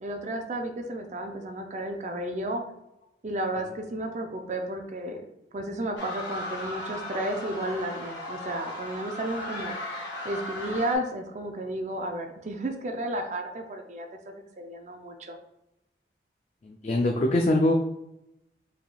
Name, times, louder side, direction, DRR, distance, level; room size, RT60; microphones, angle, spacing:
voice 1, 0.0-2.6 3.2-5.2 5.5-9.7 10.2-15.4, right 1 dB, 40° right, 4 dB, 0.4 m, -33 dB
sound 1, 6.0-10.9, left 1 dB, 75° left, 1.5 m, -36 dB
voice 2, 16.6-17.7, left 1 dB, 35° left, 1 dB, 0.3 m, -23 dB
4.9 x 3.4 x 2.3 m, 0.87 s
head